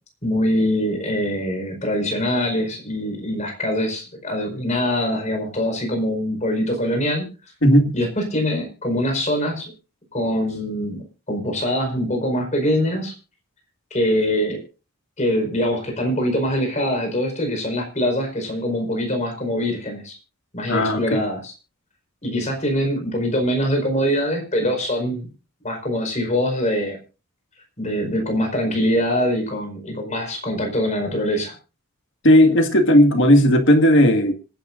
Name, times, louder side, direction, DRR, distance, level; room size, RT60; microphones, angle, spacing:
voice 1, 0.2-7.2 7.9-9.7 10.1-13.1 13.9-14.6 15.2-20.2 20.5-21.5 22.2-25.3 25.6-27.0 27.8-31.5, equal, 30° left, 4.8 m, -23 dB
voice 2, 7.6-7.9 20.7-21.2 32.2-34.3, equal, 55° left, 2.0 m, -15 dB
26.0 x 10.5 x 2.6 m
head